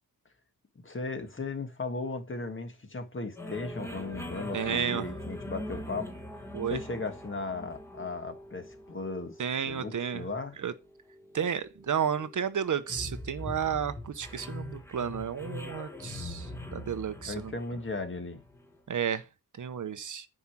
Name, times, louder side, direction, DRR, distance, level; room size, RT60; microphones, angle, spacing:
voice 1, 0.8-6.1 6.3-9.4 9.6-10.5 17.2-18.4, left 3 dB, 35° left, 1.6 m, -36 dB
sound 1, 3.4-18.8, left 1 dB, 5° left, 1.5 m, -42 dB
voice 2, 4.5-5.1 6.5-6.8 9.4-10.3 10.6-10.7 11.3-17.5 18.9-19.2 19.6-20.3, right 8 dB, 55° right, 0.8 m, -32 dB
9.7 x 4.9 x 6.0 m
wide cardioid pair, 175°, 36 cm